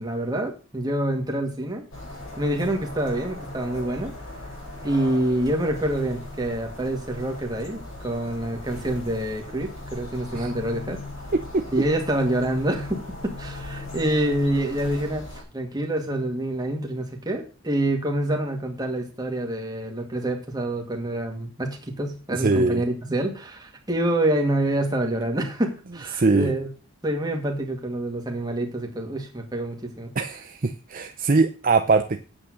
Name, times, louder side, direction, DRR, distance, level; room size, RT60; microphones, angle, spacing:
voice 1, 0.0-1.8 2.4-4.1 4.8-11.0 11.7-26.7 27.0-30.1, right 1 dB, 20° right, 2 dB, 2.1 m, -27 dB
sound 1, 1.9-15.4, left 2 dB, 70° left, 5.4 m, -38 dB
voice 2, 11.3-11.6 22.3-22.8 26.1-26.5 30.2-32.2, right 3 dB, 40° right, 8 dB, 0.6 m, -22 dB
8.7 x 8.5 x 6.3 m, 0.35 s
head